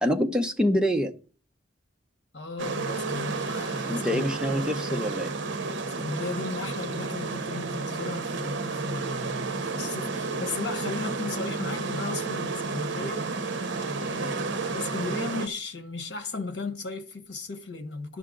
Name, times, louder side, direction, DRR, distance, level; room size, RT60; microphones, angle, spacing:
voice 1, 0.0-1.1 3.9-5.3, equal, 5° right, 0.8 m, -26 dB
voice 2, 2.3-4.6 6.0-18.2, left 3 dB, 60° left, 1.4 m, -36 dB
sound 1, 2.6-15.5, right 3 dB, 75° right, 0.8 m, -31 dB
11.0 x 6.8 x 3.8 m
head